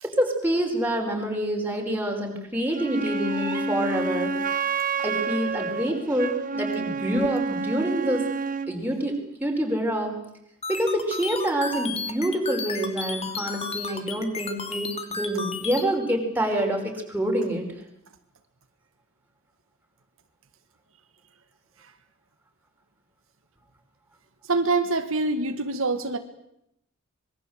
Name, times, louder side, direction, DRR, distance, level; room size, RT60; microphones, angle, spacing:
voice 1, 0.0-4.3 5.0-8.3 8.7-10.2 10.7-17.7, right 1 dB, 10° right, 1 dB, 4.9 m, -27 dB
Wind instrument woodwind instrument, 2.7-8.8, right 4 dB, 40° right, 1.4 m, -29 dB
sound 1, 10.6-15.8, left 4 dB, 30° left, 2.6 m, -33 dB
voice 2, 24.5-26.2, right 3 dB, 70° right, 7 dB, 1.8 m, -25 dB
25.5 x 22.5 x 8.0 m, 0.78 s
head